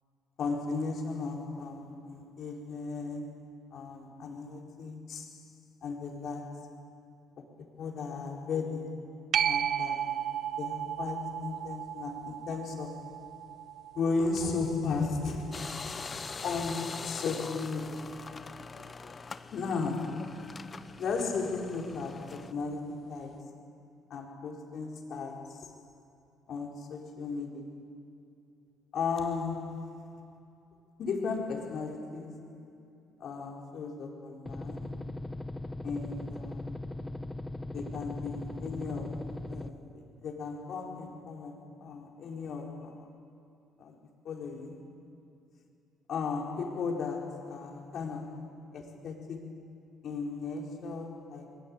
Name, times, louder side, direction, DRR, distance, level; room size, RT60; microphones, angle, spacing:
voice 1, 0.4-5.4 5.8-6.9 7.4-9.2 9.4-10.3 10.6-13.1 13.9-16.1 16.4-18.3 19.5-20.6 21.0-23.6 24.1-25.8 26.5-27.9 28.9-30.1 31.0-32.7 33.2-35.1 35.8-36.7 37.7-43.1 43.8-44.0 44.2-44.9 46.1-49.6 50.0-51.6, left 4 dB, 55° left, 4.4 m, -36 dB
sound 1, 9.3-16.5 22.0-22.1, right 9 dB, 55° right, 0.6 m, -35 dB
sound 2, 15.5-22.5, left 4 dB, 30° left, 0.9 m, -43 dB
sound 3, 34.5-39.7, left 2 dB, 10° left, 1.2 m, -39 dB
30.0 x 22.5 x 8.8 m
cardioid pair, 100°, 0 cm